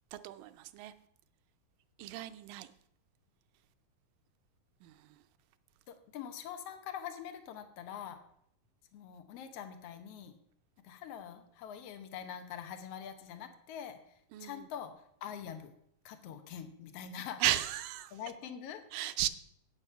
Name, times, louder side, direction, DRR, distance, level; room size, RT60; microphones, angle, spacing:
voice 1, 0.1-0.9 2.0-2.7 4.8-5.2 14.3-14.7 17.4-18.1 18.9-19.3, right 14 dB, 80° right, 10 dB, 2.1 m, -35 dB
voice 2, 5.9-8.2 8.9-10.4 10.8-14.0 14.4-14.9 15.2-15.7 16.0-17.4 18.1-19.1, left 9 dB, 80° left, 8 dB, 1.3 m, -44 dB
9.0 x 8.4 x 5.6 m, 0.70 s
omnidirectional pair, 4.1 m